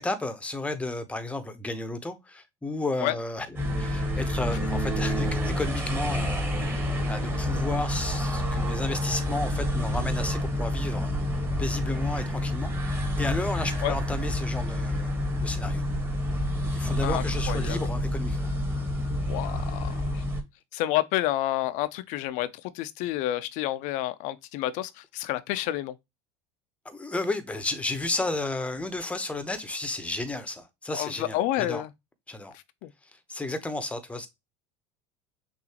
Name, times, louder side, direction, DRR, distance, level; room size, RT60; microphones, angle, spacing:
voice 1, 0.0-11.1 11.6-15.8 16.7-18.4 26.8-31.8 32.3-32.6 33.3-34.3, left 2 dB, 10° left, 1.0 m, -33 dB
sound 1, 3.6-20.4, left 1 dB, 15° right, 1.6 m, -28 dB
voice 2, 17.0-17.9 19.3-20.2 20.7-22.5 22.7-25.9 30.9-31.9 32.8-32.9, left 14 dB, 60° left, 0.6 m, -29 dB
6.2 x 2.7 x 2.9 m
supercardioid pair, 100°, 15 cm